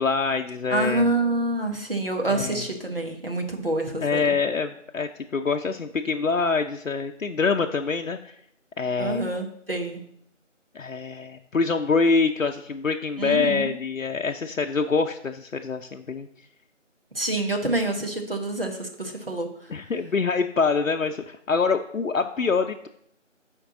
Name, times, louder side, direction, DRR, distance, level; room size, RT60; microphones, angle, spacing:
voice 1, 0.0-1.1 2.3-2.6 4.0-8.4 8.8-9.2 10.7-16.3 19.7-22.9, left 4 dB, 90° left, 5 dB, 0.6 m, -25 dB
voice 2, 0.7-4.3 9.0-10.0 13.2-13.7 17.1-19.5, right 2 dB, 45° right, 3 dB, 1.1 m, -27 dB
8.3 x 4.6 x 3.8 m, 0.69 s
figure-of-eight pair, 170°, 38 cm